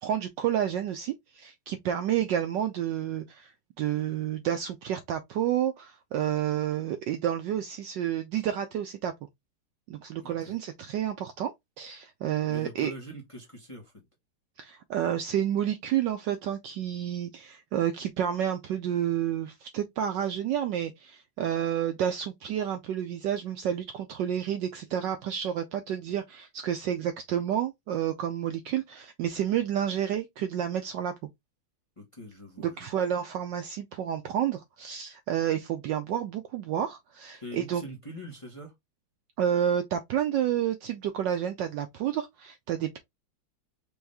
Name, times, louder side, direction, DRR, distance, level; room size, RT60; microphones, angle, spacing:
voice 1, 0.0-3.5 3.8-9.1 9.9-11.5 11.8-12.9 14.6-31.1 32.6-37.8 39.4-43.0, right 10 dB, 75° right, 1.1 m, -30 dB
voice 2, 10.2-10.6 12.5-13.9 32.0-32.9 37.4-38.7, equal, 20° left, 1.0 m, -43 dB
4.8 x 2.6 x 3.3 m
omnidirectional pair, 2.3 m